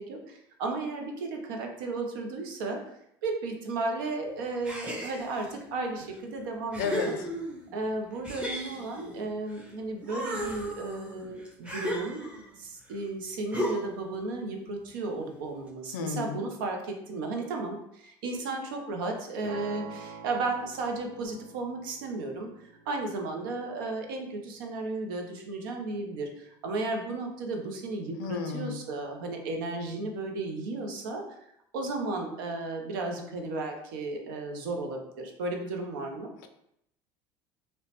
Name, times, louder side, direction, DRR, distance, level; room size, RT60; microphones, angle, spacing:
voice 1, 0.0-2.8 3.2-7.2 7.7-12.3 12.6-31.3 31.7-36.3, right 3 dB, 90° right, 3 dB, 0.5 m, -34 dB
sound 1, 4.6-5.5 6.1-6.2 6.7-7.7 8.2-9.7 10.0-12.5 13.5-14.1, equal, 10° right, 0.7 m, -35 dB
voice 2, 6.8-7.1 15.9-16.4 28.2-28.8, left 6 dB, 90° left, 6 dB, 0.4 m, -32 dB
sound 2, 19.4-25.5, right 5 dB, 45° right, 0.6 m, -47 dB
2.9 x 2.0 x 2.8 m, 0.78 s
supercardioid pair, 95°, 11 cm